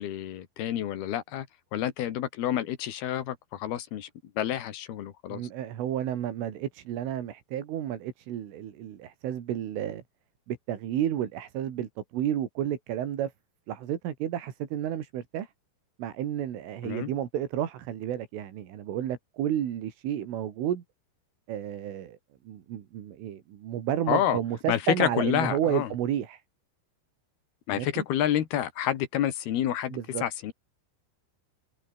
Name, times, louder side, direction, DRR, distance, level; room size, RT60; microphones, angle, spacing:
voice 1, 0.0-1.5 1.7-4.1 4.4-5.4 16.8-17.1 24.1-24.4 24.7-25.9 27.7-30.5, left 11 dB, 60° left, 3.4 m, -29 dB
voice 2, 5.3-10.0 10.5-13.3 13.7-15.5 16.0-20.8 21.5-22.2 22.4-26.4 27.7-28.0 29.9-30.2, right 10 dB, 85° right, 5.1 m, -31 dB
omnidirectional pair, 5.5 m